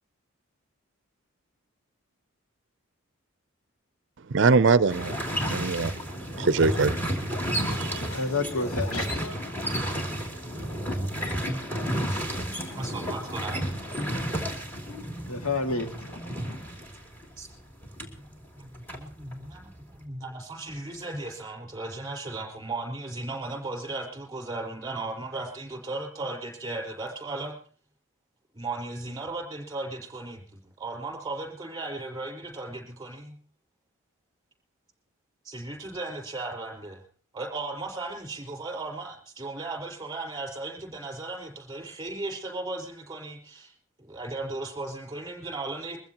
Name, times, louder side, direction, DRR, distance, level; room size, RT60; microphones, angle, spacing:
voice 1, 4.3-5.2 5.5-6.0 6.4-7.0 7.8-8.1, right 4 dB, 55° right, 0.6 m, -22 dB
sound 1, 4.9-18.2 18.4-19.8, equal, 10° left, 2.8 m, -32 dB
voice 2, 7.6-9.6 15.3-16.2, left 3 dB, 85° left, 2.2 m, -31 dB
voice 3, 12.6-13.6 17.4-17.5 18.2-27.6 28.5-33.4 35.4-37.0 37.3-43.7 44.0-46.0, right 2 dB, 20° right, 4.5 m, -36 dB
22.5 x 15.0 x 2.9 m
head